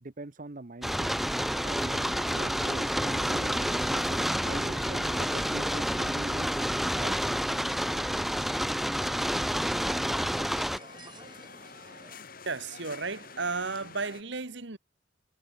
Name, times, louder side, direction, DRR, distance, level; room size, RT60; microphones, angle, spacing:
voice 1, 0.0-1.1 1.6-6.7 7.0-7.2, right 2 dB, 40° right, 0.9 m, -43 dB
sound 1, 0.8-10.8, equal, ahead, 0.7 m, -29 dB
sound 2, 1.5-14.2, left 4 dB, 45° left, 3.4 m, -48 dB
sound 3, 4.5-12.2, right 2 dB, 20° right, 5.9 m, -51 dB
voice 2, 12.4-14.8, right 4 dB, 65° right, 1.5 m, -33 dB
head